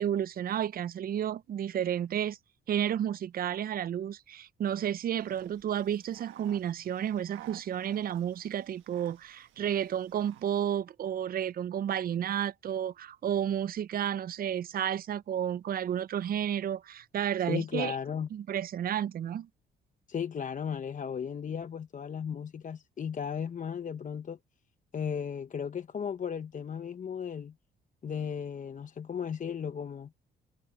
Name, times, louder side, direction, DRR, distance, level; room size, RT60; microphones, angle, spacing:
voice 1, 0.0-2.4 2.7-18.0 18.3-19.5, right 10 dB, 50° right, 0.5 m, -31 dB
sound 1, 5.2-10.7, right 12 dB, 80° right, 1.3 m, -55 dB
voice 2, 17.5-18.3 20.1-24.4 24.9-27.5 28.0-30.1, left 7 dB, 40° left, 0.8 m, -35 dB
cardioid pair, 90°, 20 cm